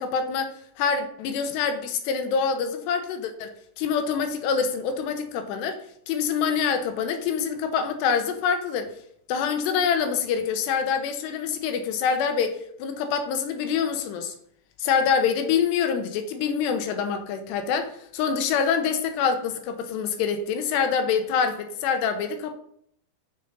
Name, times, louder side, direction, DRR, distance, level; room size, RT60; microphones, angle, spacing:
voice 1, 0.0-5.8 6.1-8.9 9.3-14.3 14.8-22.5, left 6 dB, 80° left, 3.0 m, -26 dB
6.9 x 6.8 x 5.4 m
omnidirectional pair, 4.9 m